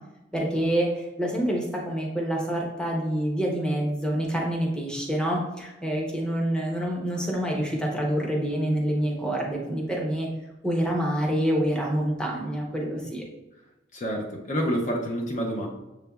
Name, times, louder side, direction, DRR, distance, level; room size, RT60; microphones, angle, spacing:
voice 1, 0.3-10.3 10.6-13.3, right 1 dB, 5° left, -1 dB, 0.7 m, -27 dB
voice 2, 13.9-15.7, equal, 40° left, 0 dB, 0.6 m, -28 dB
6.8 x 3.2 x 2.3 m, 0.98 s
head